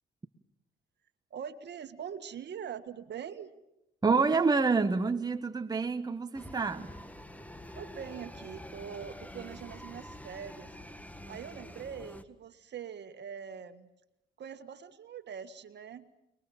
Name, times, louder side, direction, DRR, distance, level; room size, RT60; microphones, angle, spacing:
voice 1, 1.3-3.5 7.8-10.8 11.3-13.9 14.4-16.1, right 7 dB, 55° right, 1.8 m, -43 dB
voice 2, 4.0-6.9, right 4 dB, 20° right, 1.2 m, -27 dB
sound 1, 6.3-12.2, left 1 dB, 5° left, 1.7 m, -47 dB
30.0 x 21.5 x 7.3 m
supercardioid pair, 80°, 21 cm